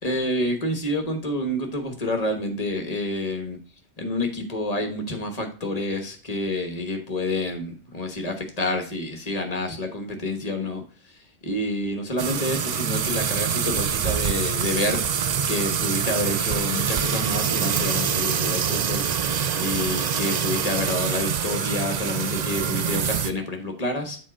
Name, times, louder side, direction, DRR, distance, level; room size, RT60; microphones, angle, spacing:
voice 1, 0.0-3.6 4.0-15.1 15.5-19.1 19.6-24.2, left 1 dB, 35° left, 4 dB, 1.3 m, -28 dB
sound 1, 12.2-23.3, right 7 dB, 50° right, 0.5 m, -25 dB
7.3 x 4.1 x 4.9 m, 0.38 s
omnidirectional pair, 1.1 m